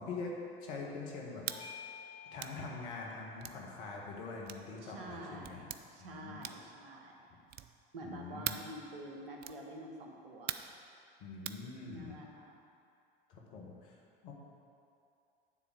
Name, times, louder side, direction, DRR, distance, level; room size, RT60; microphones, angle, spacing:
voice 1, 0.0-1.8 2.3-5.6 6.0-6.4 8.0-8.6 11.2-12.2 13.3-14.0 14.2-14.3, left 3 dB, 60° left, -2 dB, 1.7 m, -44 dB
sound 1, 1.4-1.6 2.4-2.6 3.4-3.6 4.4-4.7 5.4-5.8 6.4-6.7 7.5-7.8 8.4-8.7 9.4-9.6 10.5-10.8 11.4-11.6, right 12 dB, 35° right, 0.4 m, -41 dB
Bell / Doorbell, 1.5-6.3, left 6 dB, 20° left, 1.1 m, -54 dB
voice 2, 4.8-7.3 7.9-10.6 11.8-12.6, right 1 dB, 70° right, 0 dB, 1.4 m, -48 dB
9.8 x 3.9 x 6.3 m, 2.5 s
figure-of-eight pair, 80°, 29 cm